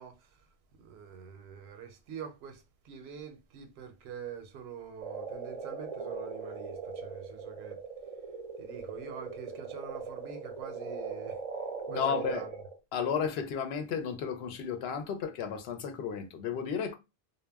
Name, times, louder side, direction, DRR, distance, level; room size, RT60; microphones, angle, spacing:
voice 1, 0.0-7.8 8.6-12.5, right 7 dB, 85° right, 0.9 m, -46 dB
sound 1, 5.0-12.8, right 5 dB, 50° right, 0.5 m, -39 dB
voice 2, 11.9-12.4 12.9-16.9, left 7 dB, 80° left, 0.8 m, -33 dB
2.1 x 2.0 x 3.3 m
omnidirectional pair, 1.0 m